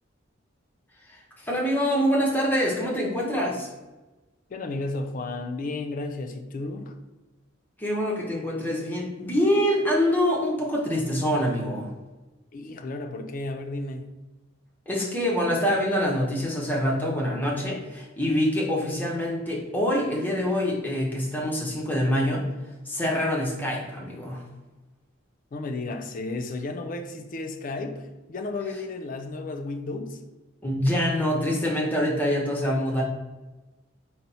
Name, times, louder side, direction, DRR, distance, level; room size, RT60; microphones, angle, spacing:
voice 1, 1.1-3.7 7.8-11.9 14.9-22.4 22.9-24.4 30.6-33.0, equal, 10° left, 0.7 m, -25 dB
voice 2, 4.5-6.9 12.5-14.1 25.5-30.2, left 2 dB, 40° left, 0.3 m, -33 dB
4.0 x 2.0 x 4.1 m
head